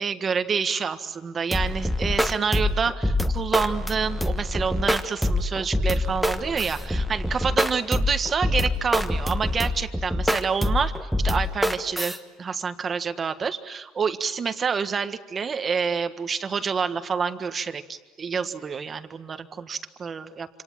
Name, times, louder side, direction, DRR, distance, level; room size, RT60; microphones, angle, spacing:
voice 1, 0.0-20.5, right 6 dB, 25° right, 10 dB, 1.5 m, -28 dB
sound 1, 1.5-12.2, left 1 dB, ahead, 1.3 m, -25 dB
27.5 x 27.0 x 7.5 m, 1.2 s
cardioid pair, 140°, 0 cm